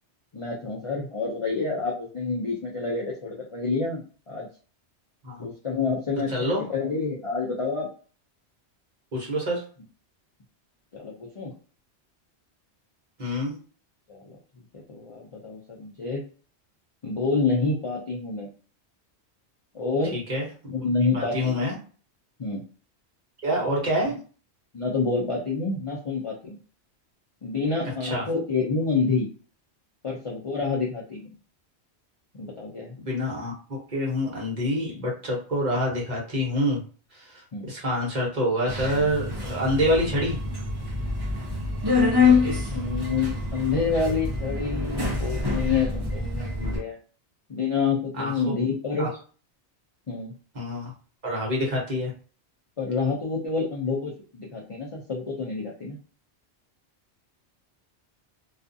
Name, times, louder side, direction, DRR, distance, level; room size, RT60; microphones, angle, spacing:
voice 1, 0.3-4.5 5.4-7.9 10.9-11.5 14.1-14.4 14.9-16.2 17.0-18.5 19.7-20.2 20.7-21.6 22.4-22.6 24.7-26.6 27.4-29.3 30.0-31.3 32.4-33.0 37.5-37.7 42.7-47.0 47.5-49.1 50.1-50.4 52.8-56.0, left 4 dB, 45° left, -4 dB, 0.4 m, -28 dB
voice 2, 6.3-6.7 9.1-9.6 13.2-13.5 20.1-20.4 21.1-21.7 23.4-24.1 28.0-28.2 33.0-36.8 37.1-40.4 48.2-48.3 49.0-49.1 50.5-50.9 51.2-52.1, equal, 45° right, -3 dB, 1.0 m, -26 dB
Subway metro underground, 38.7-46.8, left 4 dB, 25° right, 0.7 m, -26 dB
2.4 x 2.3 x 2.6 m, 0.39 s
omnidirectional pair, 1.2 m